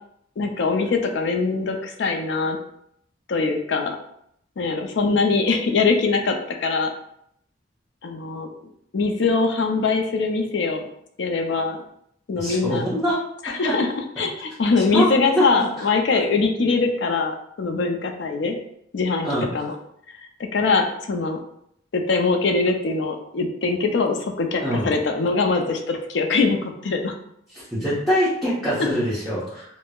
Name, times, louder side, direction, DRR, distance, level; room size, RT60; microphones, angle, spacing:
voice 1, 0.4-2.6 3.3-4.0 4.6-6.9 8.0-8.5 8.9-10.8 11.2-11.8 12.3-12.9 13.4-13.9 14.2-18.6 18.9-19.3 19.5-19.7 20.5-21.4 21.9-27.1, left 4 dB, 70° left, 4 dB, 0.4 m, -22 dB
voice 2, 12.3-13.2 13.5-13.7 14.8-15.0 15.3-15.4 19.2-19.4 24.6-24.9 27.7-29.6, equal, ahead, -12 dB, 0.8 m, -24 dB
4.3 x 2.0 x 2.3 m, 0.71 s
head